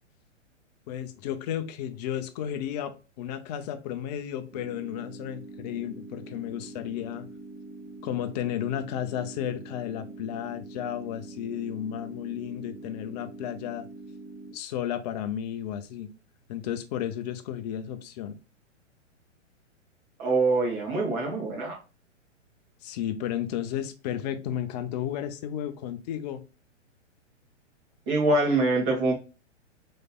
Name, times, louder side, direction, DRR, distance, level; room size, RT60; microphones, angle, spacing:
voice 1, 0.9-7.3 8.0-13.9 14.5-16.1 16.5-18.4 22.8-26.4, left 10 dB, 35° left, 8 dB, 0.6 m, -33 dB
sound 1, 4.5-14.5, right 2 dB, 10° right, 1.0 m, -44 dB
voice 2, 20.2-21.8 28.1-29.1, right 2 dB, 35° right, -1 dB, 2.2 m, -24 dB
4.2 x 3.3 x 2.3 m, 0.31 s
hypercardioid pair, 130°, 37 cm